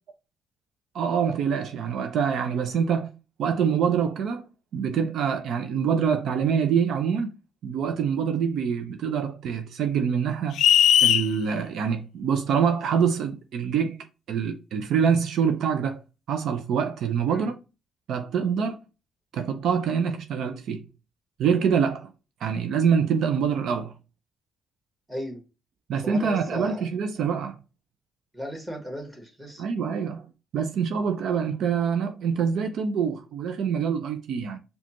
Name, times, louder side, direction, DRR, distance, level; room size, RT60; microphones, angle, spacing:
voice 1, 0.9-3.1 3.4-7.3 7.6-10.6 11.0-16.0 16.3-17.5 18.1-18.8 19.3-20.9 21.4-22.1 22.4-23.9 25.9-27.6 29.6-30.3 30.5-34.6, right 7 dB, 70° right, 0.5 m, -25 dB
sound 1, 10.6-11.3, left 10 dB, 75° left, 0.3 m, -17 dB
voice 2, 25.1-25.4 26.0-26.8 28.3-29.6, equal, 10° right, 1.7 m, -36 dB
4.9 x 2.4 x 2.9 m
cardioid pair, 90°, 0 cm